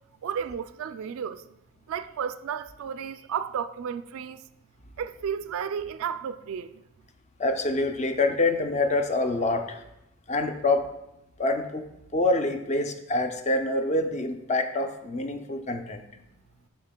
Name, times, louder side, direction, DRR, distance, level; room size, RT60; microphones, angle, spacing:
voice 1, 0.2-1.4 1.9-4.4 5.0-6.7, right 7 dB, 70° right, 0.3 m, -33 dB
voice 2, 7.4-9.8 10.3-10.9 11.4-11.8 12.1-16.2, left 2 dB, 30° left, 0.4 m, -26 dB
7.7 x 6.0 x 2.2 m
head